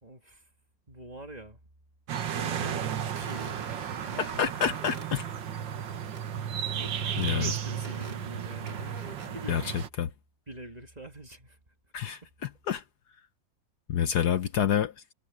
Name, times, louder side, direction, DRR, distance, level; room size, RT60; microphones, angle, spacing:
voice 1, 0.0-0.4 0.9-1.6 2.3-4.2 6.7-9.8 10.5-11.6 14.1-14.4, right 1 dB, 20° right, 2.1 m, -45 dB
sound 1, 2.1-9.9, right 8 dB, 80° right, 2.0 m, -34 dB
sound 2, 3.2-5.1 6.1-6.2 6.6-7.4 7.8-8.2 8.7-9.3, right 3 dB, 65° right, 3.8 m, -46 dB
voice 2, 4.2-5.3 7.2-7.5 9.5-10.1 11.9-12.8 13.9-14.9, left 9 dB, 65° left, 1.3 m, -28 dB
omnidirectional pair, 2.0 m